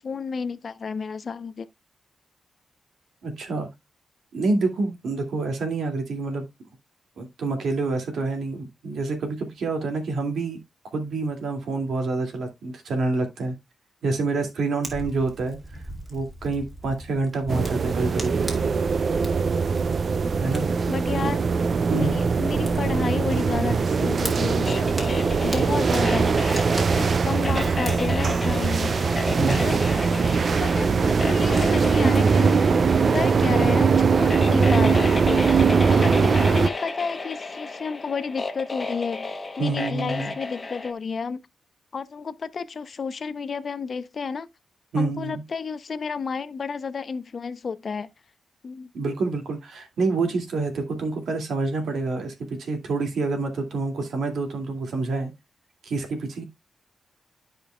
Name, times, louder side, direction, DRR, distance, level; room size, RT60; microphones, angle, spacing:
voice 1, 0.0-1.7 20.9-21.4 21.9-25.0 25.4-26.4 26.8-29.0 29.3-29.8 30.6-32.6 33.1-35.5 35.9-41.4 41.9-44.5 45.0-48.1 48.6-48.9, left 5 dB, 50° left, 0.6 m, -31 dB
voice 2, 3.2-3.7 4.3-6.5 7.2-10.6 10.9-13.5 14.0-15.6 16.1-18.5 20.4-20.7 21.2-21.3 21.9-22.2 29.4-29.7 39.6-40.3 44.9-45.4 48.9-55.3 55.8-56.4, right 3 dB, 80° right, 2.2 m, -27 dB
Fire, 14.8-28.6, right 1 dB, 15° right, 2.4 m, -40 dB
sound 1, 17.5-36.7, right 5 dB, 50° right, 0.4 m, -21 dB
sound 2, 24.3-40.9, left 3 dB, 30° left, 1.0 m, -33 dB
13.0 x 5.1 x 2.2 m
cardioid pair, 100°, 0 cm